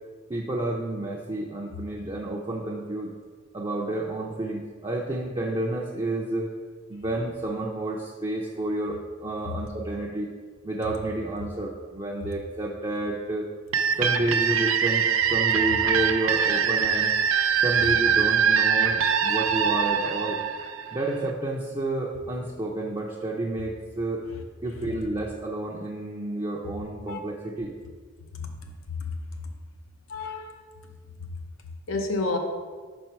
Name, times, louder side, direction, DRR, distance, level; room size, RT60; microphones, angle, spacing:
voice 1, 0.3-3.1 3.5-6.5 6.9-10.3 10.6-13.5 14.0-17.1 17.6-20.4 20.9-24.2 24.6-27.7, right 2 dB, 25° right, -3 dB, 0.5 m, -30 dB
sound 1, 13.7-21.3, right 7 dB, 85° right, 0.4 m, -23 dB
voice 2, 30.1-30.6 31.9-32.4, left 3 dB, 80° left, 4 dB, 0.7 m, -29 dB
5.8 x 4.3 x 4.5 m, 1.5 s
head